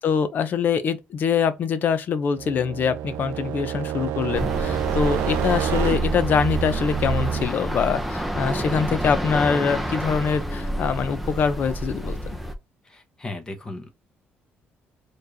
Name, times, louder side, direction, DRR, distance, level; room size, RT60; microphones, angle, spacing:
voice 1, 0.0-12.4, left 6 dB, 50° left, 0.6 m, -24 dB
sound 1, 2.4-7.5, right 10 dB, 80° right, 0.4 m, -28 dB
sound 2, 4.3-12.6, equal, ahead, 0.6 m, -28 dB
voice 2, 12.9-13.9, left 2 dB, 20° left, 1.0 m, -36 dB
4.5 x 3.2 x 2.7 m
cardioid pair, 135°, 4 cm